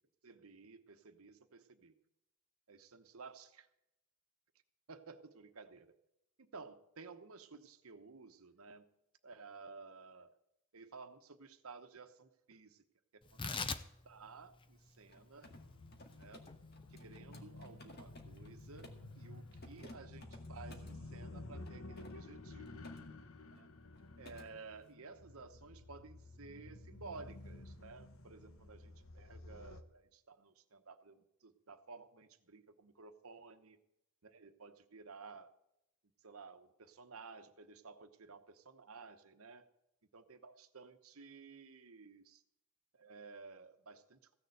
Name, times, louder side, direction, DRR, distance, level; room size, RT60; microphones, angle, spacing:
voice 1, 0.2-1.9 2.7-3.7 4.9-5.9 6.4-8.9 9.2-10.3 10.7-12.8 13.3-15.5 16.1-16.4 16.9-22.7 23.4-23.7 24.2-33.8 34.2-35.5 36.2-39.7 40.1-42.4 42.9-44.4, right 4 dB, 80° right, 9 dB, 1.0 m, -54 dB
Tearing, 13.2-19.9, left 4 dB, 25° left, 0.6 m, -47 dB
Mechanisms, 15.0-19.1 19.5-21.0 21.6-23.0 23.3-23.6 23.9-24.5, left 1 dB, 50° left, 2.0 m, -58 dB
sound 1, 15.5-29.8, left 2 dB, 70° left, 1.0 m, -52 dB
15.5 x 6.8 x 7.9 m, 0.83 s
head